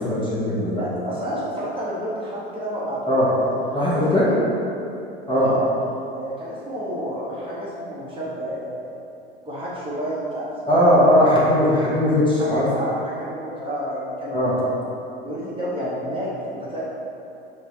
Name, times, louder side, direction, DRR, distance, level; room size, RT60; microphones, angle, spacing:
voice 1, 0.0-0.8 3.1-3.3 3.7-4.3 5.3-5.5 10.7-12.7 14.3-14.6, equal, 15° left, -8 dB, 1.1 m, -18 dB
voice 2, 0.7-3.8 4.3-4.4 5.3-5.7 6.1-8.9 9.4-10.9 12.4-14.4 15.2-16.8, equal, 15° right, -9 dB, 1.0 m, -30 dB
5.5 x 2.4 x 3.1 m, 2.7 s
figure-of-eight pair, 80°, 31 cm